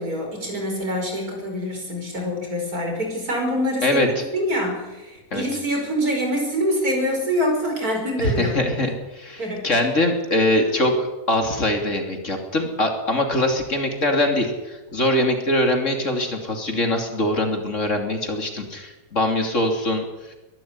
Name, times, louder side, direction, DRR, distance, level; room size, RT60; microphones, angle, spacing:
voice 1, 0.0-8.8 9.4-9.7, equal, 75° right, 3 dB, 5.4 m, -25 dB
voice 2, 3.8-4.2 5.3-5.4 8.2-20.3, left 1 dB, 55° left, 4 dB, 3.4 m, -23 dB
22.5 x 12.5 x 9.8 m, 1.1 s
omnidirectional pair, 1.6 m